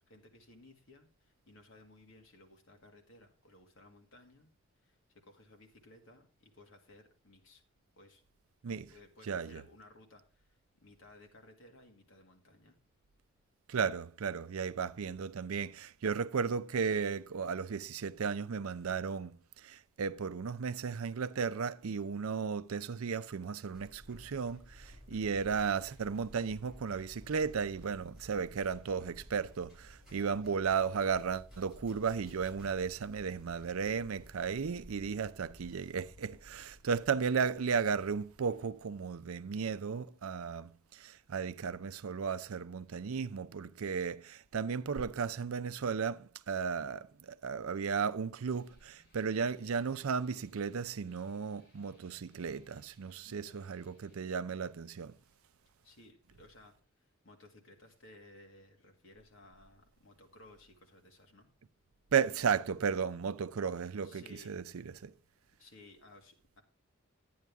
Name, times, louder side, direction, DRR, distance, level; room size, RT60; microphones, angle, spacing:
voice 1, 0.0-4.5 4.8-7.6 8.0-8.2 8.7-12.8 25.1-25.3 30.1-30.3 36.5-36.7 53.3-53.6 55.8-61.5 64.0-64.6 65.6-66.6, left 2 dB, 65° left, 2.0 m, -59 dB
voice 2, 9.3-9.6 13.7-55.1 62.1-65.1, right 6 dB, 85° right, 0.5 m, -35 dB
sound 1, 23.7-38.7, equal, ahead, 6.7 m, -55 dB
sound 2, 48.4-57.4, equal, 45° left, 5.6 m, -71 dB
11.0 x 9.4 x 3.5 m
head